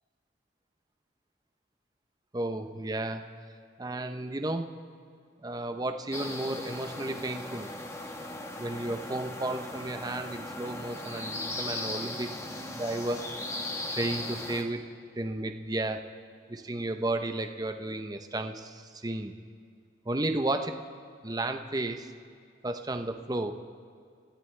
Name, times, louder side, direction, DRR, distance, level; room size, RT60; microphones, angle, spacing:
voice 1, 2.3-3.2 3.8-4.7 5.4-7.7 8.6-12.3 12.7-13.2 13.9-14.8 15.2-16.0 16.5-19.3 20.1-20.8 21.2-22.1 22.6-23.6, right 2 dB, 20° right, 6 dB, 0.7 m, -33 dB
sound 1, 6.1-14.6, left 2 dB, 15° left, 1.1 m, -38 dB
25.0 x 14.5 x 3.3 m, 2.2 s
head